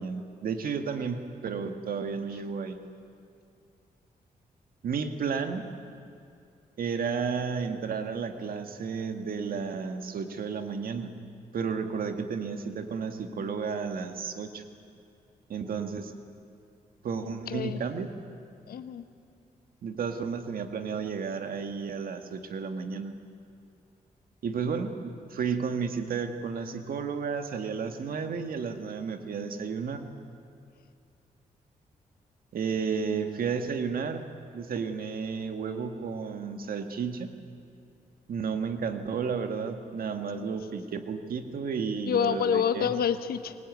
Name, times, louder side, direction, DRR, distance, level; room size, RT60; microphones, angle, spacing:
voice 1, 0.0-2.8 4.8-5.7 6.8-11.1 11.5-14.6 15.5-16.1 17.0-18.1 19.8-23.1 24.4-30.0 32.5-34.3 34.5-37.3 38.3-42.9, right 5 dB, 75° right, 6 dB, 1.9 m, -32 dB
voice 2, 17.2-17.8 18.7-19.1 42.0-43.6, left 8 dB, 85° left, 10 dB, 1.3 m, -28 dB
24.5 x 20.0 x 9.5 m, 2.5 s
cardioid pair, 75°, 15 cm